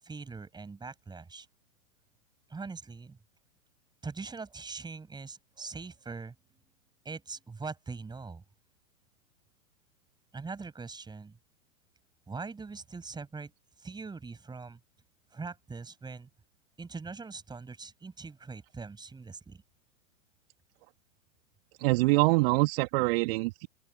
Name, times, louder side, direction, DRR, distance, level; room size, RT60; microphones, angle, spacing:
voice 1, 0.0-1.5 2.5-3.2 4.0-6.3 7.0-8.4 10.3-11.4 12.3-13.5 13.8-14.8 15.3-16.3 16.8-19.6, right 4 dB, 10° right, 6.6 m, -42 dB
voice 2, 21.8-23.7, right 24 dB, 40° right, 2.6 m, -25 dB
open air
figure-of-eight pair, 115°, 47 cm